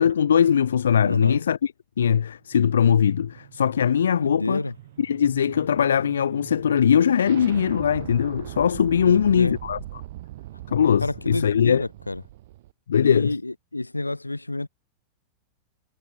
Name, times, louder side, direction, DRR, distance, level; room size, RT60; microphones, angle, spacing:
voice 1, 0.0-1.7 2.0-4.6 5.0-9.8 10.7-11.8 12.9-13.3, left 8 dB, 65° left, 0.5 m, -21 dB
voice 2, 1.0-1.4 4.2-4.7 9.0-9.6 11.0-12.2 13.0-14.7, left 2 dB, 85° left, 2.9 m, -28 dB
sound 1, 2.5-12.7, right 16 dB, 55° right, 2.1 m, -41 dB
figure-of-eight pair, 90°, 0 cm